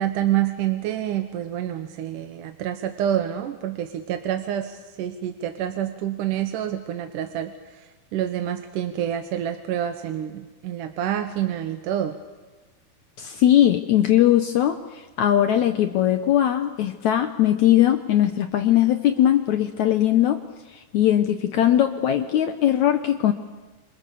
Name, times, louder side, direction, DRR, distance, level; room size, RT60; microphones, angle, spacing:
voice 1, 0.0-12.2, right 11 dB, 70° right, 6 dB, 2.4 m, -27 dB
voice 2, 13.2-14.8 15.2-20.4 20.7-23.3, left 11 dB, 70° left, 7 dB, 1.8 m, -20 dB
28.0 x 27.0 x 7.0 m, 1.2 s
omnidirectional pair, 4.3 m